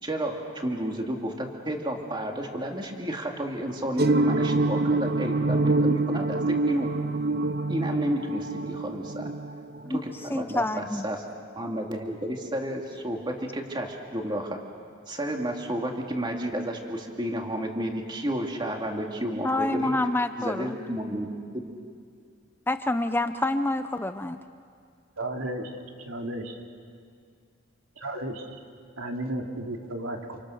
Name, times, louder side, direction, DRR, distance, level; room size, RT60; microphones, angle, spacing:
voice 1, 0.0-6.9 7.7-9.2 9.9-10.6 11.0-11.2 11.6-14.6 15.1-20.0 20.4-21.3 21.5-21.7, equal, 20° right, 2 dB, 2.4 m, -31 dB
sound 1, 4.0-10.2, right 2 dB, 50° right, 0.8 m, -26 dB
voice 2, 10.3-11.1 19.4-20.8 22.7-24.4, left 2 dB, 10° left, 9 dB, 0.6 m, -27 dB
voice 3, 25.2-25.7 26.0-26.5 28.0-28.5 29.0-30.4, right 1 dB, 85° right, 2 dB, 3.0 m, -33 dB
29.0 x 28.0 x 6.4 m, 2.2 s
head